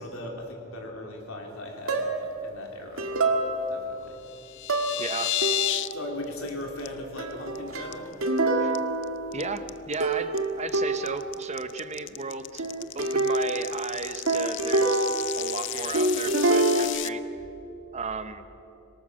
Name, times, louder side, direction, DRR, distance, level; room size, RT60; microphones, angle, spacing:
voice 1, 0.0-3.1 3.7-4.2 5.9-8.2, left 1 dB, 85° left, 1 dB, 3.6 m, -38 dB
sound 1, 1.9-2.4 3.0-4.0 4.7-5.1 5.4-6.0 7.2-9.7 10.0-11.4 12.6-15.7 15.9-16.8, right 2 dB, 85° right, 1.9 m, -26 dB
sound 2, 4.3-5.9 6.2-6.5 6.8-6.9 7.3-7.6 7.9-8.4 8.7-17.1, left 13 dB, 60° left, 0.6 m, -32 dB
voice 2, 5.0-5.4 8.6-8.8 9.3-10.3 10.6-12.6 12.9-15.1 15.3-17.2 17.9-18.4, right 4 dB, 35° right, 10 dB, 1.0 m, -34 dB
25.5 x 18.5 x 6.3 m, 2.8 s
head